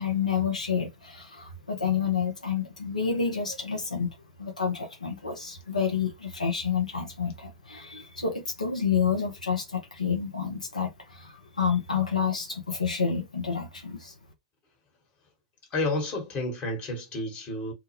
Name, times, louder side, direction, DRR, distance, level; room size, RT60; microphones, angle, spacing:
voice 1, 0.0-4.1 4.4-14.1, left 6 dB, 85° left, 0.6 m, -29 dB
voice 2, 15.7-17.7, left 2 dB, 35° left, 1.2 m, -30 dB
2.2 x 2.0 x 2.8 m
figure-of-eight pair, 95°, 4 cm